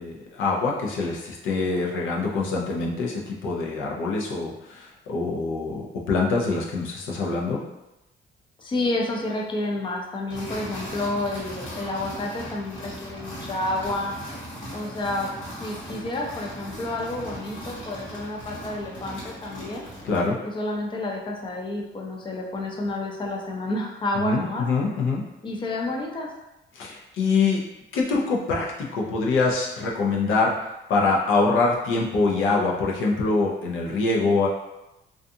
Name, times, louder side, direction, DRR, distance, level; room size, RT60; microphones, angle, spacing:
voice 1, 0.0-7.6 20.0-20.4 24.1-25.3 26.7-27.6 27.9-34.5, left 3 dB, 85° left, -2 dB, 0.6 m, -24 dB
voice 2, 8.6-14.1 14.7-15.3 15.6-19.9 20.4-24.7 25.4-26.3, left 2 dB, 25° left, 0 dB, 0.5 m, -30 dB
sound 1, 10.3-20.3, equal, 70° left, 1.2 m, -38 dB
2.4 x 2.4 x 2.6 m, 0.94 s
cardioid pair, 90°, 20 cm